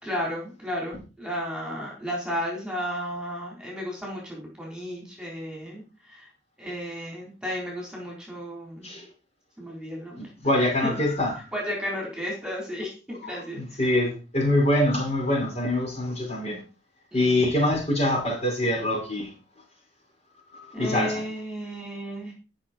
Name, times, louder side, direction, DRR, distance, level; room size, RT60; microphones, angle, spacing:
voice 1, 0.0-6.3 6.6-8.9 9.6-10.3 10.8-11.0 11.5-13.7 17.1-17.4 20.7-22.3, equal, 5° right, 4.1 m, -33 dB
voice 2, 10.2-11.3 13.6-16.6 17.1-19.3 20.7-21.1, left 1 dB, 35° left, 5.5 m, -24 dB
13.5 x 6.5 x 4.5 m
head